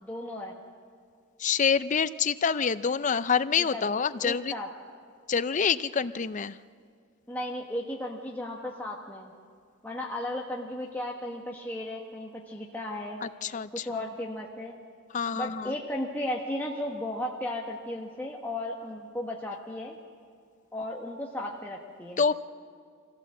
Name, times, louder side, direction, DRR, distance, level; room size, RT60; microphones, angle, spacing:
voice 1, 0.0-0.6 3.7-4.7 7.3-9.3 9.8-13.2 13.7-14.7 15.3-20.0 20.7-22.3, left 1 dB, 10° left, -2 dB, 1.3 m, -35 dB
voice 2, 1.4-4.5 5.3-6.6 13.2-14.0 15.1-15.8 22.2-22.3, left 6 dB, 35° left, 14 dB, 0.5 m, -27 dB
24.5 x 16.5 x 7.5 m, 2.2 s
head